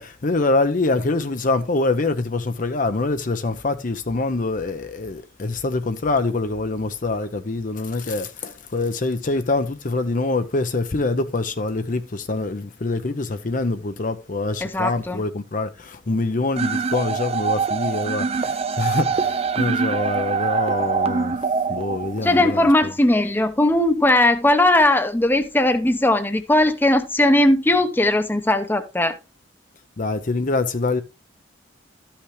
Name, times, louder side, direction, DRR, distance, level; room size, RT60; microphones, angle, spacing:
voice 1, 0.0-21.4 21.7-22.7 30.0-31.0, left 3 dB, 45° left, 0.7 m, -25 dB
voice 2, 14.6-15.2 22.2-29.2, left 1 dB, 10° left, 0.8 m, -18 dB
sound 1, 16.6-22.5, right 5 dB, 30° right, 0.5 m, -24 dB
13.0 x 5.8 x 3.2 m
head